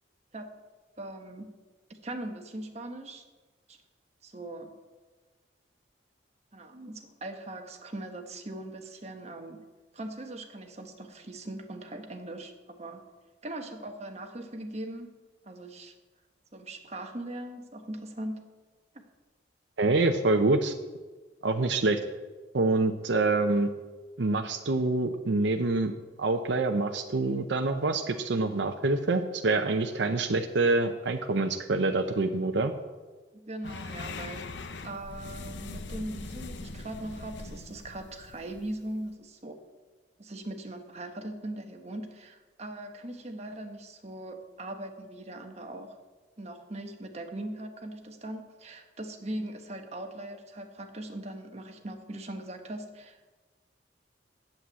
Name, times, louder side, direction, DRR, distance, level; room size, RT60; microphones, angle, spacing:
voice 1, 1.0-1.5 1.9-3.2 3.7-3.8 4.2-4.7 6.5-9.6 9.9-13.0 13.4-15.1 15.4-15.9 16.5-18.4 33.3-34.4 34.8-39.6 40.2-46.0 46.4-53.3, right 1 dB, 35° right, 4 dB, 1.2 m, -40 dB
voice 2, 19.8-20.7 21.4-22.0 22.5-23.7 24.2-25.9 26.2-32.7, right 3 dB, 75° right, 5 dB, 0.7 m, -26 dB
sound 1, 33.6-39.1, left 3 dB, 75° left, 0.7 m, -41 dB
8.7 x 7.8 x 8.2 m, 1.3 s
head